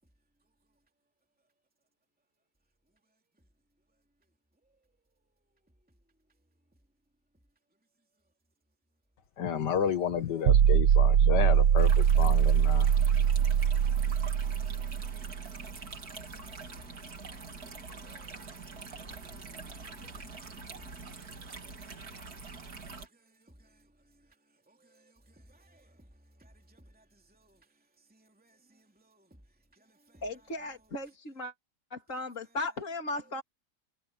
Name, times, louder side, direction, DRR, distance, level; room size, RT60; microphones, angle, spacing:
voice 1, 9.4-12.9, left 8 dB, 90° left, 2.0 m, -31 dB
sound 1, 10.5-15.5, right 9 dB, 80° right, 1.5 m, -23 dB
sound 2, 11.8-23.1, right 4 dB, 65° right, 3.1 m, -45 dB
voice 2, 12.8-13.5 13.8-14.2 16.2-16.9 17.3-20.2 21.1-21.7 23.0-23.9 24.7-26.1 26.4-27.6 28.1-29.3 29.7-30.2, right 1 dB, 5° right, 2.8 m, -61 dB
voice 3, 30.2-31.5 31.9-33.4, left 2 dB, 50° left, 3.6 m, -36 dB
omnidirectional pair, 1.8 m